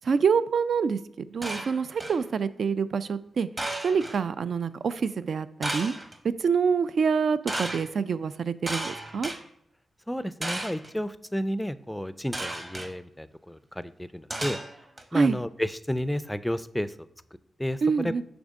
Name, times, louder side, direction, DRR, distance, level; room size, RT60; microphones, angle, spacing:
voice 1, 0.0-1.0 1.3-3.5 3.8-5.9 6.4-9.3 15.1-15.4 17.8-18.2, right 5 dB, 70° right, 14 dB, 0.3 m, -26 dB
sound 1, 1.4-2.2 3.6-4.2 5.6-6.2 7.5-7.8 8.7-9.4 10.4-10.9 12.3-12.9 14.3-15.0, right 1 dB, 30° right, 1.0 m, -34 dB
voice 2, 10.1-14.6 15.1-16.9 17.6-18.1, equal, 5° left, 14 dB, 0.4 m, -31 dB
6.0 x 3.5 x 5.2 m, 0.76 s
cardioid pair, 70°, 0 cm